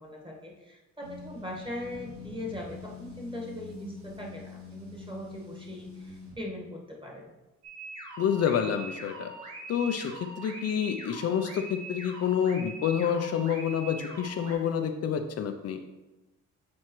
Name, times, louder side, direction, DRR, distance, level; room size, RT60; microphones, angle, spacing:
voice 1, 0.0-7.3, left 1 dB, 15° right, 0 dB, 1.5 m, -40 dB
sound 1, 1.0-6.4, left 5 dB, 60° right, 2.0 m, -45 dB
sound 2, 7.6-14.5, right 3 dB, 90° right, 1.6 m, -43 dB
voice 2, 8.2-9.3 9.7-15.8, left 8 dB, 55° left, 6 dB, 0.5 m, -28 dB
7.6 x 4.2 x 3.1 m, 1.1 s
cardioid pair, 90°, 30 cm